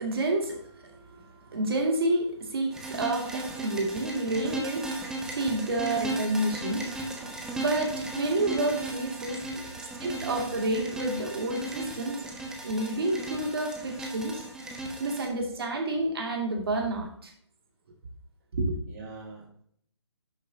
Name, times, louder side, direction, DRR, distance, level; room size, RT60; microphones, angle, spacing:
voice 1, 0.0-9.4 10.0-12.2 12.6-14.4 15.0-17.3 18.6-18.8, right 2 dB, 55° right, 2 dB, 2.4 m, -29 dB
sound 1, 2.7-15.3, right 2 dB, 5° right, 1.0 m, -36 dB
voice 2, 9.5-10.1 18.9-19.6, right 3 dB, 35° right, -2 dB, 1.9 m, -45 dB
11.0 x 7.1 x 2.8 m, 0.64 s
figure-of-eight pair, 145°, 15 cm